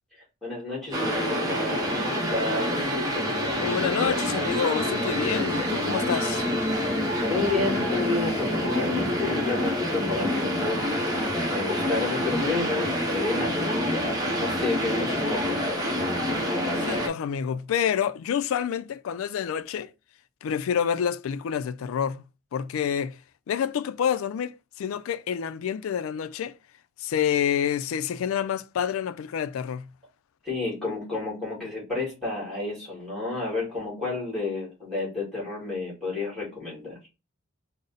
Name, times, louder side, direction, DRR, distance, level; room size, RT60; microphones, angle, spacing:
voice 1, 0.4-2.9 7.3-11.1 11.5-15.5 30.4-37.0, left 3 dB, ahead, 1.9 m, -31 dB
sound 1, 0.9-17.1, equal, 20° right, 0.8 m, -27 dB
voice 2, 3.6-6.5 16.8-19.9 20.4-22.2 22.5-23.2 23.5-26.5 27.0-29.9, left 8 dB, 80° left, 0.3 m, -28 dB
3.8 x 2.0 x 3.9 m
head